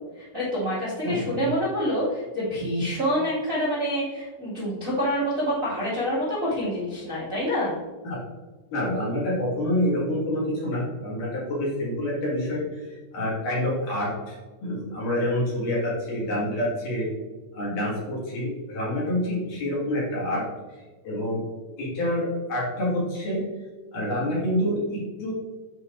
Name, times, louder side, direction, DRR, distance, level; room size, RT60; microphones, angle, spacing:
voice 1, 0.1-7.8, equal, 40° right, -9 dB, 1.1 m, -27 dB
voice 2, 1.0-1.4 8.7-14.4 14.6-17.1 17.5-20.4 20.7-21.4 21.8-23.4 23.9-25.3, left 1 dB, 55° left, -6 dB, 3.1 m, -27 dB
8.2 x 5.8 x 2.6 m, 1.3 s
omnidirectional pair, 5.2 m